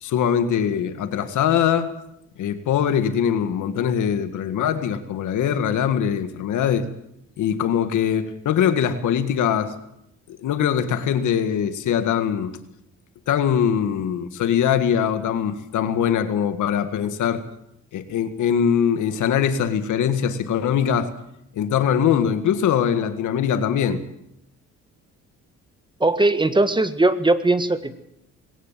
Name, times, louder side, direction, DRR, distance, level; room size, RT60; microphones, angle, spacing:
voice 1, 0.0-1.9 2.4-6.8 7.4-9.7 10.3-12.6 13.3-17.4 17.9-21.1 21.5-24.0, left 8 dB, 75° left, 10 dB, 2.0 m, -22 dB
voice 2, 26.0-28.0, right 2 dB, 15° right, 11 dB, 1.6 m, -19 dB
21.0 x 18.0 x 7.5 m, 0.80 s
cardioid pair, 90°, 30 cm